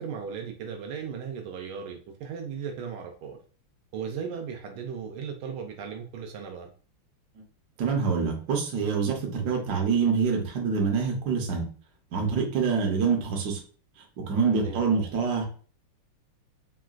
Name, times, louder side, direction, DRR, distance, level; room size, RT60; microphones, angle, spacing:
voice 1, 0.0-3.4 3.9-6.7 14.5-14.8, right 6 dB, 80° right, 3 dB, 1.4 m, -36 dB
voice 2, 7.8-11.7 12.1-13.6 14.3-15.4, right 5 dB, 60° right, 1 dB, 1.1 m, -26 dB
3.7 x 2.3 x 2.3 m, 0.40 s
omnidirectional pair, 2.4 m